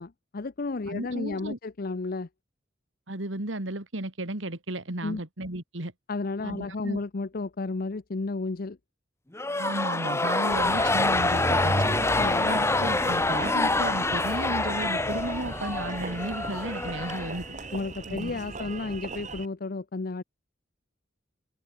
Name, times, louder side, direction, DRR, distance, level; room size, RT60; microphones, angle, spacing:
voice 1, 0.0-2.3 5.0-5.2 6.1-8.8 12.2-12.5 17.7-20.2, left 3 dB, 50° left, 0.7 m, -32 dB
voice 2, 0.9-1.6 3.1-5.9 6.4-7.0 9.6-11.9 12.4-17.5 18.1-18.3 18.6-18.7, right 1 dB, 85° right, 2.8 m, -34 dB
sound 1, 9.3-17.8, left 2 dB, 15° left, 1.0 m, -26 dB
Engine, 10.5-19.5, right 2 dB, 40° right, 2.1 m, -35 dB
open air
head